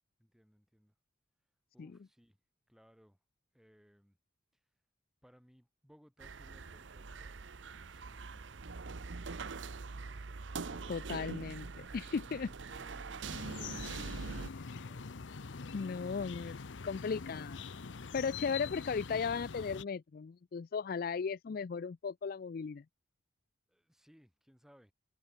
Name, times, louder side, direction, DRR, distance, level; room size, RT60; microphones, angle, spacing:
voice 1, 0.2-0.9 1.7-2.4 2.7-3.2 3.5-4.2 5.2-7.3 10.6-11.1 12.7-15.3 16.0-16.2 16.5-17.1 23.7-24.9, equal, ahead, 7.5 m, -64 dB
sound 1, 6.2-14.5, right 4 dB, 80° right, 0.8 m, -43 dB
sound 2, 10.4-18.8, left 3 dB, 25° left, 7.7 m, -76 dB
voice 2, 10.9-12.5 15.7-16.6 16.8-17.6 18.1-22.8, left 5 dB, 50° left, 0.4 m, -36 dB
sound 3, 13.2-19.8, left 5 dB, 80° left, 0.7 m, -44 dB
head